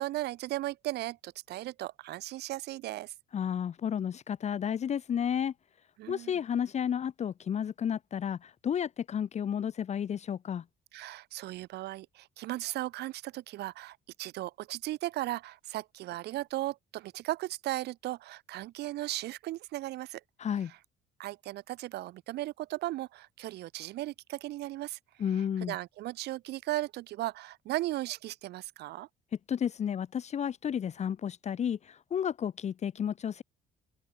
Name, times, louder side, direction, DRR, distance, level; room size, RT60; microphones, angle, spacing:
voice 1, 0.0-3.1 6.0-6.3 10.9-20.2 20.7-20.8 21.2-25.0 25.3-29.1, right 16 dB, 75° right, 2.7 m, -36 dB
voice 2, 3.3-5.5 6.1-10.6 20.4-20.7 25.2-25.7 29.5-33.4, left 8 dB, 40° left, 1.2 m, -32 dB
open air
cardioid pair, 110°, 17 cm